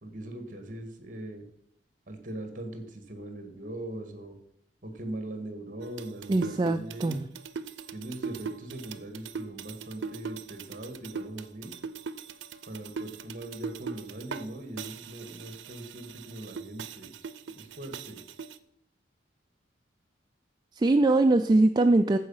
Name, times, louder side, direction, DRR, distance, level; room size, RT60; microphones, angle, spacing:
voice 1, 0.0-1.5 2.1-4.4 4.8-7.3 7.9-11.7 12.7-17.1 17.5-18.2, right 1 dB, 45° right, 5 dB, 1.7 m, -40 dB
sound 1, 5.8-14.5 14.8-18.6, right 5 dB, 90° right, 0.6 m, -40 dB
voice 2, 6.3-7.2 20.8-22.2, right 2 dB, 25° right, 7 dB, 0.3 m, -22 dB
14.0 x 4.8 x 5.5 m, 0.76 s
head